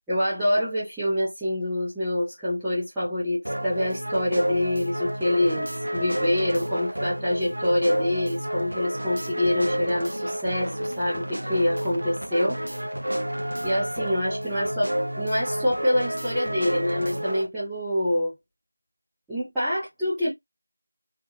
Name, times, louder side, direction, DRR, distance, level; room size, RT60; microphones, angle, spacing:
voice 1, 0.1-12.6 13.6-18.3 19.3-20.3, left 1 dB, ahead, 0.4 m, -26 dB
sound 1, 3.4-17.5, equal, 50° right, 0.6 m, -30 dB
3.4 x 2.0 x 2.9 m
figure-of-eight pair, 175°, 0 cm